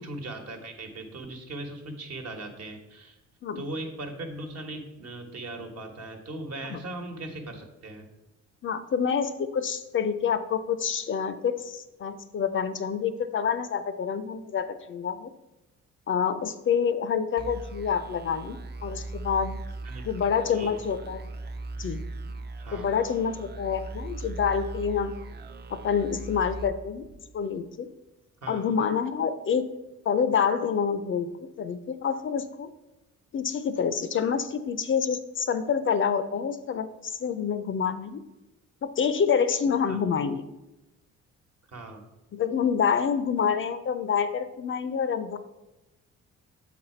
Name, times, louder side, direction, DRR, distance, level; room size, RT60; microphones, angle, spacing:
voice 1, 0.0-3.2 3.5-8.1 19.8-20.0 20.5-20.8 22.6-22.9 28.4-28.8 39.9-40.0 41.7-42.1, right 2 dB, 55° right, 3 dB, 1.2 m, -39 dB
voice 2, 8.6-15.3 16.1-19.6 20.0-21.3 21.8-22.0 22.7-25.1 25.7-27.1 27.3-27.9 28.5-29.7 30.1-31.3 31.6-32.7 33.3-38.2 38.8-40.4 42.3-45.4, left 7 dB, 40° left, 11 dB, 0.5 m, -27 dB
sound 1, 17.4-27.7, right 2 dB, 35° right, 0.5 m, -39 dB
7.4 x 4.1 x 4.3 m, 0.99 s
cardioid pair, 90°, 30 cm